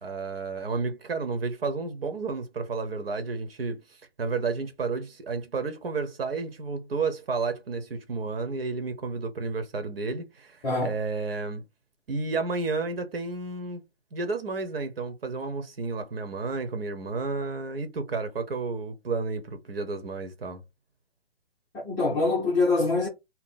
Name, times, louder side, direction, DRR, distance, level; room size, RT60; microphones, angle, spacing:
voice 1, 0.0-11.6 12.1-13.8 14.1-20.6, right 4 dB, 70° right, 1.0 m, -31 dB
voice 2, 10.6-11.0 21.7-23.1, left 3 dB, 10° left, 0.7 m, -24 dB
3.9 x 2.1 x 4.0 m
hypercardioid pair, 150°, 30 cm